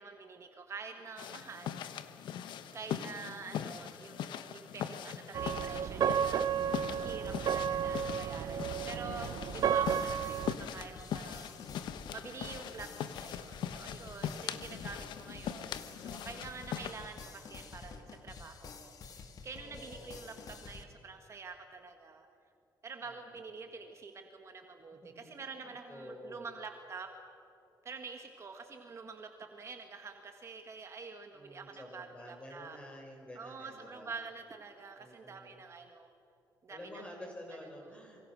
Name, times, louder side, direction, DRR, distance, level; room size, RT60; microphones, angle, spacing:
voice 1, 0.0-1.8 2.7-11.5 12.1-12.9 13.2-22.3 22.8-27.1 27.8-32.8 33.3-36.1 36.6-36.8 37.8-38.0, right 4 dB, 40° right, 5 dB, 1.7 m, -47 dB
sound 1, 1.2-16.9, left 9 dB, 85° left, 1.1 m, -41 dB
voice 2, 2.6-3.1 8.6-9.3 19.5-20.5 23.0-23.5 24.9-26.5 31.3-34.1 35.0-35.6 36.7-38.3, left 1 dB, 15° left, 1 dB, 6.0 m, -51 dB
sound 2, 5.3-10.5, right 8 dB, 60° right, 0.6 m, -32 dB
sound 3, 9.1-20.8, left 4 dB, 55° left, 2.1 m, -50 dB
27.0 x 24.5 x 6.3 m, 2.6 s
cardioid pair, 140°, 8 cm